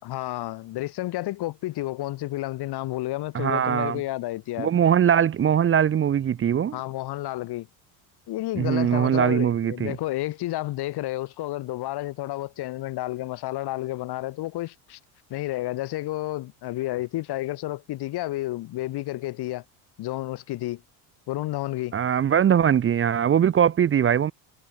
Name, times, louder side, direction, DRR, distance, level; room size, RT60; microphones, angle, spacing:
voice 1, 0.0-4.7 6.7-7.7 8.3-15.0 15.3-19.6 20.0-20.8 21.3-21.9, left 16 dB, 60° left, 5.5 m, -31 dB
voice 2, 3.3-4.0 4.6-6.8 8.5-10.0 21.9-24.3, right 9 dB, 30° right, 0.9 m, -21 dB
cardioid pair, 120°, 44 cm